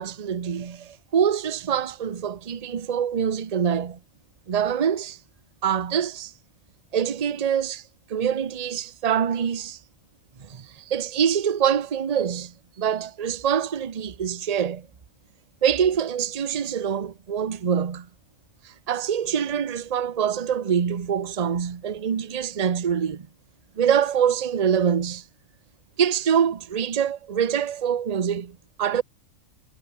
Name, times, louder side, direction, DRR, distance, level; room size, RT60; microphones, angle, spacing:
voice 1, 0.0-4.0 4.5-5.2 5.6-6.3 6.9-7.8 8.1-9.8 10.4-14.9 15.6-18.1 18.6-23.3 23.8-25.2 26.0-29.0, right 8 dB, 35° right, 0.8 m, -25 dB
omnidirectional pair, 1.4 m